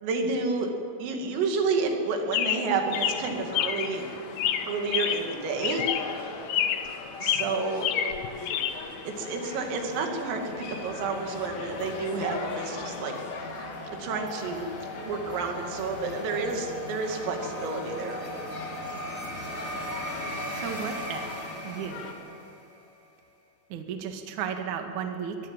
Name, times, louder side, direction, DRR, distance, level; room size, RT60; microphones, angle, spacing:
voice 1, 0.0-0.7 1.0-4.0 4.7-5.9 7.2-7.9 9.1-13.1 13.4-13.7 14.0-14.7 15.0-18.3, right 4 dB, 85° right, 3 dB, 5.0 m, -30 dB
Chirp tweet, 2.3-3.9 4.4-5.4 5.6-6.2 6.5-7.0 7.2-8.7, left 10 dB, 90° left, 2.0 m, -28 dB
sound 1, 2.9-22.1, left 5 dB, 55° left, 2.2 m, -41 dB
sound 2, 8.3-22.9, left 1 dB, 15° left, 2.5 m, -39 dB
voice 2, 20.5-21.3 21.6-22.1 23.7-25.4, right 7 dB, 55° right, 4 dB, 2.3 m, -34 dB
23.5 x 17.5 x 8.9 m, 2.4 s
omnidirectional pair, 5.8 m